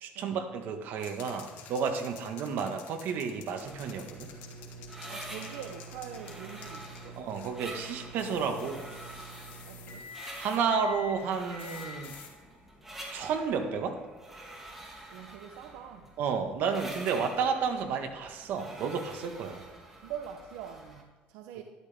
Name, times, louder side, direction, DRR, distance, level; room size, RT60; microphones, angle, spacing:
voice 1, 0.0-4.3 7.2-8.9 10.4-12.1 13.1-14.0 16.2-19.7, right 6 dB, 65° right, 5 dB, 1.6 m, -31 dB
sound 1, 1.0-7.6 8.2-10.7 11.6-12.3, left 8 dB, 75° left, 2.3 m, -51 dB
sound 2, 3.4-13.7, right 1 dB, 50° left, 3.9 m, -48 dB
sound 3, 3.6-21.0, right 1 dB, 10° right, 2.8 m, -47 dB
voice 2, 5.1-7.2 8.4-9.3 9.7-10.1 15.1-16.1 20.0-21.6, right 9 dB, 85° right, 6 dB, 0.8 m, -44 dB
13.0 x 12.0 x 3.6 m, 1.4 s
cardioid pair, 115°, 4 cm